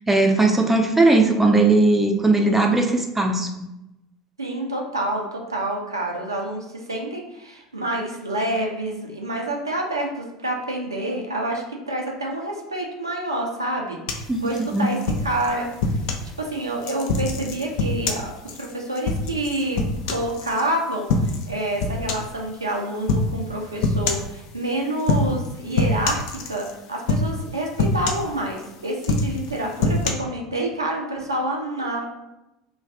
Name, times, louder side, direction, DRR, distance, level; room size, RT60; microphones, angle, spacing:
voice 1, 0.1-3.5 14.3-14.9, right 2 dB, 10° right, 3 dB, 0.4 m, -18 dB
voice 2, 4.4-16.0 16.4-26.2 26.5-32.1, right 1 dB, 85° right, 0 dB, 0.5 m, -28 dB
sound 1, 14.1-16.3 16.8-20.6 21.1-21.5 21.8-22.4 23.1-23.3 23.8-24.3 25.0-25.5 25.8-26.7 27.1-27.5 27.8-28.6 29.0-30.1, left 3 dB, 55° left, 0.4 m, -24 dB
2.4 x 2.3 x 3.3 m, 0.91 s
figure-of-eight pair, 75°, 2 cm